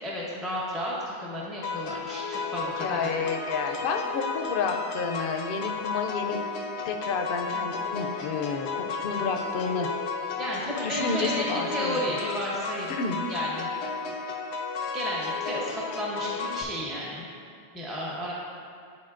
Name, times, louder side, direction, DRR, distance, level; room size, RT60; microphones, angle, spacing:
voice 1, 0.0-3.1 10.4-12.9 13.3-13.7 14.9-15.7 15.9-17.3 17.7-18.3, equal, ahead, -6 dB, 0.6 m, -32 dB
sound 1, 1.6-16.6, left 4 dB, 90° left, 0.9 m, -33 dB
voice 2, 2.8-6.4 6.8-9.9 10.8-12.0 13.0-13.2, left 5 dB, 65° left, 4 dB, 0.7 m, -30 dB
11.0 x 4.0 x 2.5 m, 2.4 s
omnidirectional pair, 1.1 m